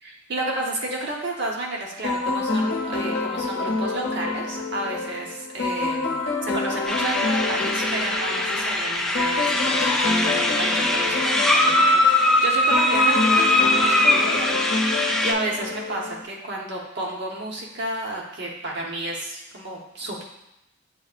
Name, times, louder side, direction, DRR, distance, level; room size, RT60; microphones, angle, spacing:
voice 1, 0.0-6.1 6.4-20.2, right 2 dB, 55° right, -2 dB, 0.9 m, -31 dB
sound 1, 2.0-16.3, left 3 dB, 55° left, 0.7 m, -27 dB
sound 2, 6.9-15.3, left 1 dB, ahead, 0.3 m, -21 dB
7.8 x 2.6 x 2.4 m, 0.85 s
head